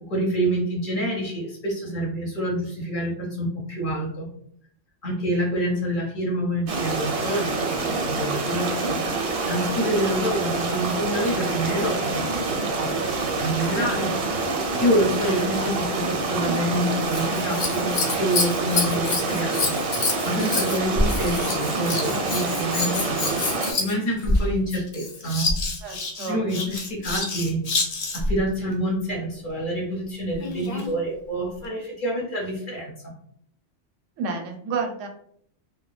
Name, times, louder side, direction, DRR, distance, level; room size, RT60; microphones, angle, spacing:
voice 1, 0.1-4.3 5.0-7.7 8.0-9.0 9.5-12.2 12.8-13.0 13.4-14.1 14.8-19.7 20.2-23.4 23.8-25.5 26.3-27.6 28.1-33.1, equal, 50° left, -1 dB, 0.7 m, -27 dB
sound 1, 6.7-23.7, right 3 dB, 65° right, 0.7 m, -26 dB
Scissors, 17.0-28.4 30.3-30.9 31.6-31.7, left 3 dB, 70° left, 0.3 m, -27 dB
voice 2, 25.8-26.7 34.2-35.1, right 4 dB, 80° right, 3 dB, 0.9 m, -30 dB
2.2 x 2.2 x 3.1 m, 0.64 s
omnidirectional pair, 1.3 m